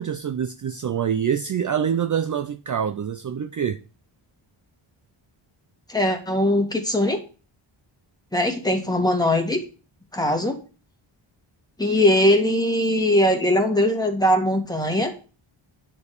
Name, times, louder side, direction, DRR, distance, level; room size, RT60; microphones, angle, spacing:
voice 1, 0.0-3.8, right 8 dB, 40° right, 0.5 m, -25 dB
voice 2, 5.9-7.2 8.3-9.6 10.1-10.6 11.8-15.1, left 1 dB, 10° left, 2.1 m, -20 dB
9.5 x 4.5 x 6.8 m
wide cardioid pair, 105°, 50 cm